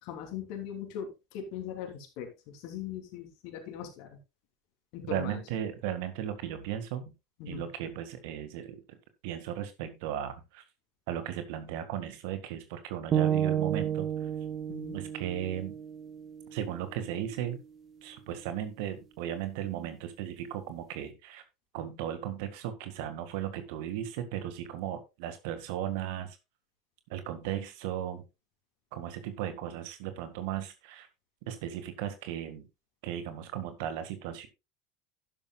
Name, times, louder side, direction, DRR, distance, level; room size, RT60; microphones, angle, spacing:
voice 1, 0.0-4.2 4.9-5.4 7.4-7.7 14.7-15.0, left 8 dB, 60° left, 4 dB, 3.2 m, -40 dB
voice 2, 5.0-7.1 7.5-9.0 9.2-10.6 11.1-14.3 14.9-15.8 16.5-17.6 18.0-21.4 21.7-26.4 27.1-28.2 28.9-31.1 31.4-32.7 33.0-34.5, right 10 dB, 65° right, 10 dB, 1.8 m, -36 dB
sound 1, 13.1-17.2, right 9 dB, 40° right, 1.5 m, -32 dB
11.5 x 11.5 x 2.4 m, 0.26 s
hypercardioid pair, 75°, 0 cm